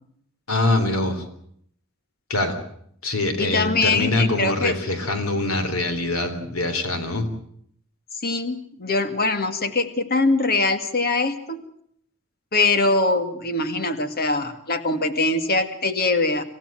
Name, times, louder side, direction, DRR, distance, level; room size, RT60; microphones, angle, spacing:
voice 1, 0.5-1.2 2.3-2.6 3.0-7.3, left 2 dB, 85° left, 8 dB, 3.7 m, -24 dB
voice 2, 3.4-4.7 8.2-11.6 12.5-16.4, left 3 dB, 45° left, 9 dB, 2.0 m, -22 dB
27.0 x 15.5 x 9.0 m, 0.68 s
head